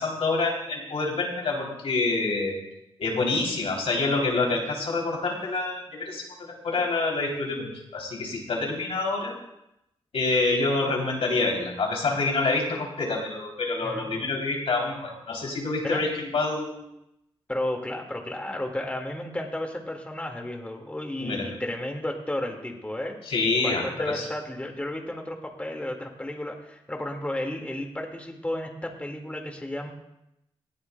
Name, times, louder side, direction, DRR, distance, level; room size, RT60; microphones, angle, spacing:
voice 1, 0.0-2.6 3.0-9.3 10.1-16.8 21.2-21.5 23.3-24.2, left 3 dB, 75° left, -1 dB, 3.1 m, -27 dB
voice 2, 13.8-14.3 15.8-16.1 17.5-23.2 23.6-29.9, left 1 dB, 15° left, 2 dB, 1.9 m, -33 dB
18.5 x 13.0 x 2.2 m, 0.85 s
cardioid pair, 70°, 10 cm